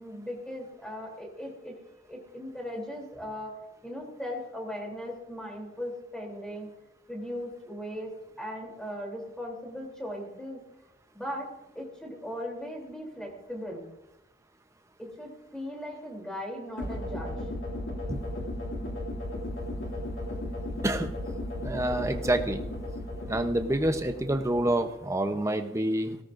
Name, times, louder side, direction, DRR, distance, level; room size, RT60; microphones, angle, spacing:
voice 1, 0.0-1.8 2.1-3.5 3.8-6.7 7.1-8.1 8.4-10.6 11.1-13.8 15.0-17.4, equal, 5° left, 0 dB, 3.3 m, -38 dB
sound 1, 16.8-25.0, left 1 dB, 80° left, 2.6 m, -35 dB
voice 2, 21.6-22.6 23.3-26.2, right 1 dB, 15° right, 7 dB, 0.8 m, -27 dB
18.5 x 17.5 x 2.6 m, 0.93 s
head